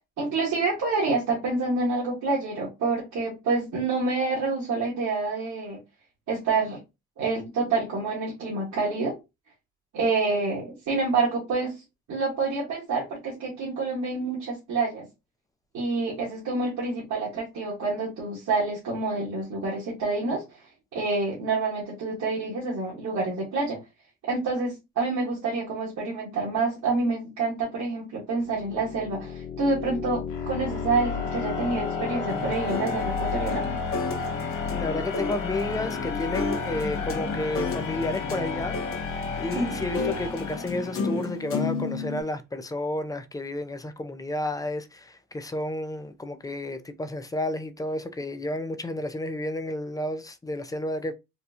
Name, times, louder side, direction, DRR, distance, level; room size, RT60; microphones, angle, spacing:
voice 1, 0.2-5.8 6.3-6.8 7.2-9.1 9.9-11.7 12.1-15.1 15.7-20.4 20.9-23.8 24.2-33.6 39.5-39.7, right 3 dB, 70° right, 1.6 m, -27 dB
sound 1, 28.5-41.4, left 5 dB, 85° left, 1.2 m, -32 dB
sound 2, 32.3-42.2, left 4 dB, 45° left, 0.9 m, -33 dB
voice 2, 34.8-38.8 39.1-51.1, left 1 dB, 10° left, 0.4 m, -31 dB
4.2 x 2.3 x 2.7 m
cardioid pair, 90°, 30 cm